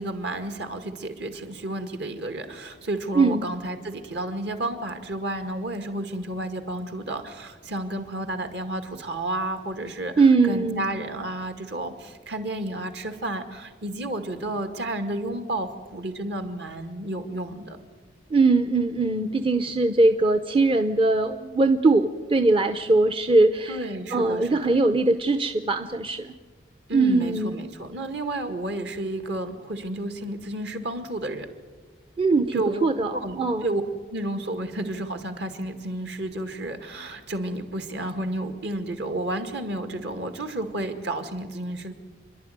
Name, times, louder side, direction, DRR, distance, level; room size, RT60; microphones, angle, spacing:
voice 1, 0.0-17.8 23.7-24.8 26.9-31.5 32.5-32.8 33.1-33.8 34.1-41.9, right 1 dB, 60° right, 7 dB, 2.2 m, -31 dB
voice 2, 10.2-10.9 18.3-26.3 26.9-27.7 32.2-33.7, right 3 dB, 30° right, 9 dB, 0.7 m, -21 dB
28.5 x 11.5 x 9.4 m, 1.4 s
head